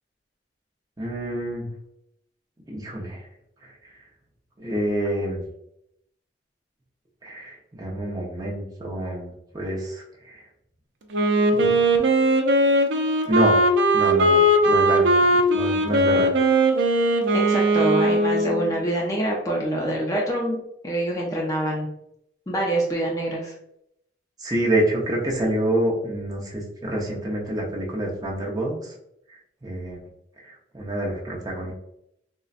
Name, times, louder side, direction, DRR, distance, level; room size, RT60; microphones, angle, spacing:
voice 1, 1.0-1.7 2.7-3.3 3.6-3.7 4.6-5.4 7.2-10.4 11.5-11.8 13.3-16.3 24.4-28.9 29.6-30.1 30.4-31.7, right 1 dB, 20° right, -3 dB, 0.7 m, -27 dB
Wind instrument woodwind instrument, 11.1-18.8, right 1 dB, 75° right, 0.5 m, -19 dB
voice 2, 17.3-20.6 20.8-21.9 22.5-23.5, right 1 dB, 20° left, -2 dB, 0.4 m, -25 dB
3.8 x 2.1 x 2.4 m, 0.78 s
head